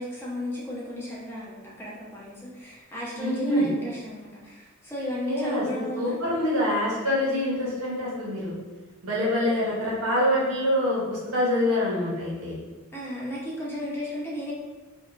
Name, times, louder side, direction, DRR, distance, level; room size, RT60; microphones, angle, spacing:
voice 1, 0.0-6.2 12.9-14.5, equal, 10° left, -7 dB, 0.7 m, -34 dB
voice 2, 3.2-3.7 5.3-8.5 9.0-12.6, left 1 dB, 85° right, -5 dB, 0.9 m, -25 dB
2.7 x 2.3 x 2.4 m, 1.2 s
head